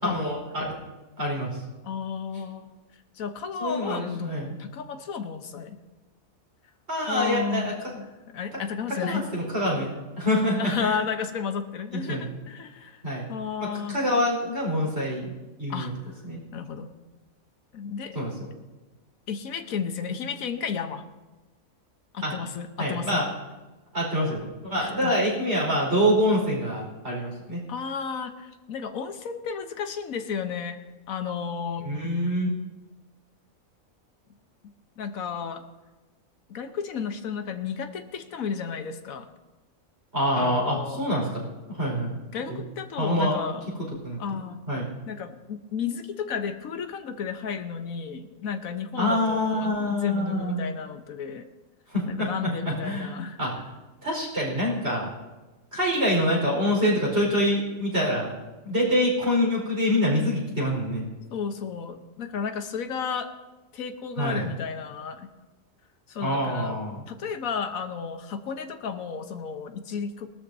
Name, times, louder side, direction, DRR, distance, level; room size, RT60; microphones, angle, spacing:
voice 1, 0.0-0.7 1.2-1.6 3.6-4.5 6.9-7.9 9.0-11.0 11.9-12.3 13.0-13.3 13.6-15.3 15.6-15.9 16.2-16.4 18.1-18.3 22.2-22.3 22.8-23.3 23.9-27.6 31.8-32.5 40.1-42.2 42.5-42.6 43.0-43.4 44.0-44.2 44.7-44.9 49.0-50.6 51.9-53.1 53.4-53.5 54.0-55.1 55.7-58.3 58.6-61.0 64.2-64.5 66.2-67.0, equal, 50° right, -3 dB, 4.9 m, -26 dB
voice 2, 1.8-2.7 3.1-5.8 7.1-9.3 10.6-13.0 13.3-14.0 15.7-15.9 16.5-16.9 17.7-18.2 19.3-21.0 22.1-23.2 24.8-25.3 27.7-30.8 31.1-31.9 34.6-35.6 36.5-39.3 40.3-41.0 42.3-43.8 44.2-44.6 45.1-51.5 52.1-53.4 61.3-63.3 63.7-65.3 66.1-70.3, left 6 dB, 85° left, 7 dB, 1.4 m, -33 dB
20.5 x 13.0 x 2.7 m, 1.2 s
omnidirectional pair, 1.4 m